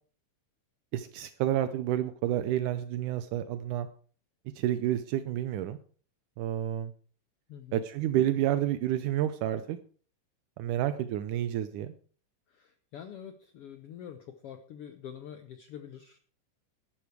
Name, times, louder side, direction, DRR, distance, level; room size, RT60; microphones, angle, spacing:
voice 1, 0.9-3.9 4.6-5.8 6.4-6.9 7.7-9.8 10.6-11.9, right 12 dB, 80° right, 11 dB, 2.1 m, -29 dB
voice 2, 7.5-7.8 12.5-16.2, left 9 dB, 75° left, 8 dB, 1.3 m, -46 dB
12.5 x 11.5 x 4.7 m, 0.43 s
omnidirectional pair, 3.7 m